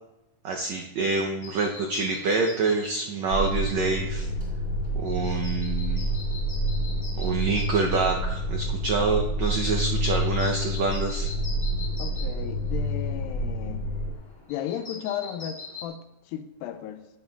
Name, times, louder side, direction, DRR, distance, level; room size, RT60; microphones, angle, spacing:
voice 1, 0.4-4.3 4.9-6.1 7.2-11.3, right 3 dB, 85° right, 1 dB, 1.5 m, -27 dB
sound 1, 1.4-15.9, left 4 dB, 25° left, 2.7 m, -44 dB
sound 2, 3.3-14.1, equal, 60° left, 1.9 m, -28 dB
voice 2, 12.0-13.9 14.5-17.1, left 10 dB, 90° left, 9 dB, 2.4 m, -35 dB
11.5 x 8.1 x 2.3 m, 0.88 s
omnidirectional pair, 4.1 m